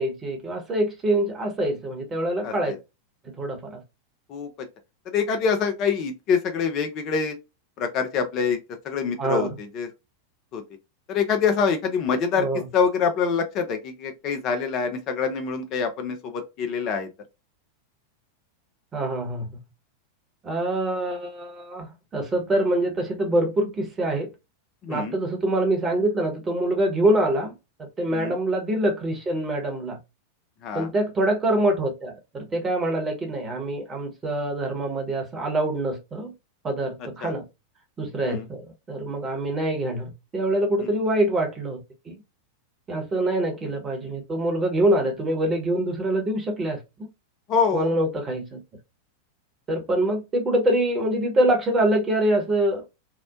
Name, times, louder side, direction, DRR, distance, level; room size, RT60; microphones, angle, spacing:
voice 1, 0.0-2.7 3.4-3.8 9.2-9.5 12.4-12.6 18.9-19.6 20.4-24.3 24.9-30.0 30.7-36.3 36.6-37.5 38.0-38.6 38.9-42.2 42.9-46.8 47.7-48.6 49.7-52.8, right 1 dB, 20° right, 0.9 m, -25 dB
voice 2, 2.4-2.8 4.3-4.7 5.1-7.4 7.8-8.6 8.8-9.9 10.5-10.6 11.1-12.5 12.7-17.1 24.8-25.2 28.1-28.4 30.6-30.9 37.2-37.3 38.2-38.4 40.8-40.9 47.5-47.9, left 6 dB, 35° left, 0.4 m, -25 dB
2.8 x 2.0 x 2.3 m
figure-of-eight pair, 90°, 0 cm